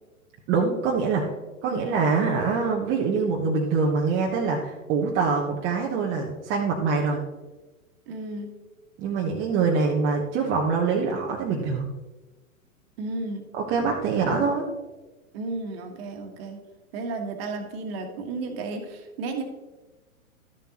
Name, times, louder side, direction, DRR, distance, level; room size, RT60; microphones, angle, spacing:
voice 1, 0.5-1.3 1.6-7.2 9.0-11.9 13.5-14.7, right 4 dB, 25° right, -1 dB, 1.0 m, -24 dB
voice 2, 8.1-8.5 13.0-13.4 14.1-14.5 15.3-16.6 16.9-19.4, right 3 dB, 45° right, 4 dB, 1.6 m, -33 dB
12.0 x 6.9 x 2.9 m, 1.1 s
hypercardioid pair, 115°, 43 cm